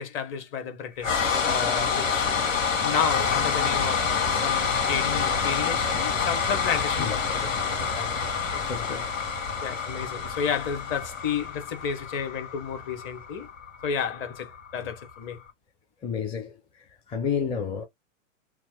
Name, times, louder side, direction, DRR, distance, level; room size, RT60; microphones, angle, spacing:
voice 1, 0.0-2.3 2.8-9.0 9.6-13.5 13.8-15.4, left 7 dB, 30° left, 1.0 m, -32 dB
sound 1, 1.0-15.1, left 6 dB, 80° left, 1.8 m, -27 dB
voice 2, 8.6-9.1 16.0-16.6 17.1-17.9, left 7 dB, 15° left, 0.6 m, -30 dB
2.9 x 2.1 x 3.5 m
hypercardioid pair, 115°, 39 cm